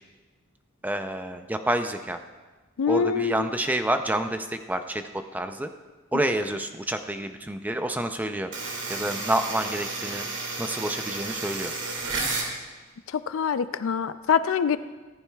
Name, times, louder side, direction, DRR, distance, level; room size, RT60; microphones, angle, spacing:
voice 1, 0.8-2.2 2.9-5.0 5.3-5.7 6.1-8.5 8.9-10.3 10.6-11.7, right 1 dB, 10° right, 7 dB, 0.5 m, -28 dB
voice 2, 2.8-3.5 13.1-14.8, left 6 dB, 70° left, 13 dB, 0.4 m, -25 dB
sound 1, 8.5-12.5, right 3 dB, 60° right, 2.0 m, -32 dB
15.0 x 14.0 x 2.3 m, 1.3 s
head